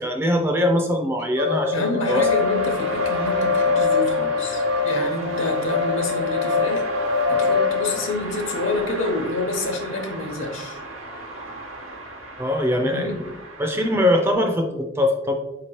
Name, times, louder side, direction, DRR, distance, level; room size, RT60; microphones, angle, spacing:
voice 1, 0.0-2.3 12.4-13.3 13.6-15.3, left 1 dB, 10° right, 3 dB, 0.3 m, -22 dB
sound 1, 1.4-8.0, left 4 dB, 60° right, 0.6 m, -23 dB
voice 2, 1.7-6.8 7.3-10.8 12.8-13.2, left 2 dB, 75° left, 3 dB, 0.8 m, -28 dB
sound 2, 2.1-14.3, right 2 dB, 90° right, 0.8 m, -35 dB
4.6 x 2.9 x 3.0 m, 0.99 s
head